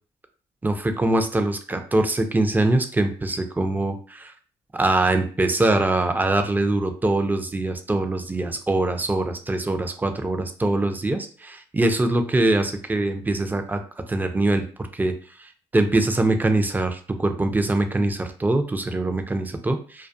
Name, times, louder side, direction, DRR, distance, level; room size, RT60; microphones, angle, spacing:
voice 1, 0.6-4.3 4.7-13.8 14.1-14.6 14.9-15.1 15.4-20.1, right 2 dB, 15° right, 6 dB, 0.4 m, -23 dB
2.3 x 2.2 x 2.5 m, 0.42 s
hypercardioid pair, 55°, 13 cm